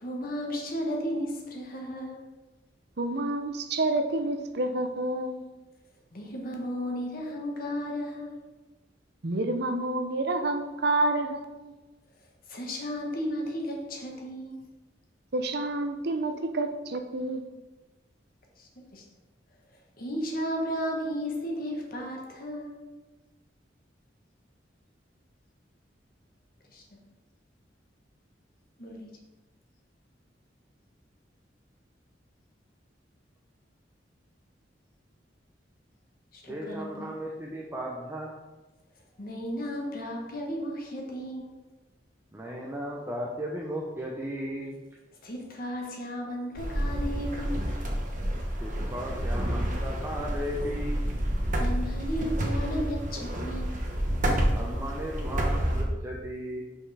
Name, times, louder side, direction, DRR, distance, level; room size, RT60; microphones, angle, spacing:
voice 1, 0.0-2.2 6.1-8.4 12.5-14.6 18.6-19.0 20.0-22.7 26.7-26.8 28.8-29.2 36.3-36.9 39.2-41.6 45.2-47.6 51.5-53.8, equal, 55° left, 0 dB, 1.4 m, -34 dB
voice 2, 3.0-5.4 9.2-11.7 15.3-17.5, right 2 dB, 60° right, 7 dB, 0.7 m, -29 dB
voice 3, 36.5-38.3 42.3-44.8 48.6-51.0 54.5-56.6, equal, 15° right, -3 dB, 0.8 m, -36 dB
sound 1, 46.6-55.8, equal, 45° right, 1.1 m, -29 dB
5.5 x 5.4 x 4.9 m, 1.1 s
head